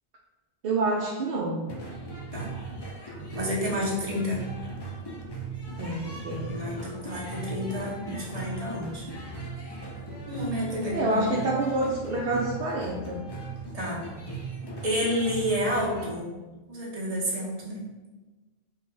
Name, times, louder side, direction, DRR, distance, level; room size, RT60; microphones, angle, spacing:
voice 1, 0.6-1.6 5.8-6.5 10.9-13.2, right 2 dB, 60° right, -3 dB, 0.7 m, -27 dB
sound 1, 1.7-16.1, right 3 dB, 30° left, 0.5 m, -38 dB
voice 2, 3.3-4.4 6.5-9.0 10.3-11.2 13.7-14.0 14.8-16.3 16.7-17.8, equal, 35° right, -4 dB, 1.0 m, -30 dB
4.4 x 2.3 x 3.7 m, 1.2 s
omnidirectional pair, 1.1 m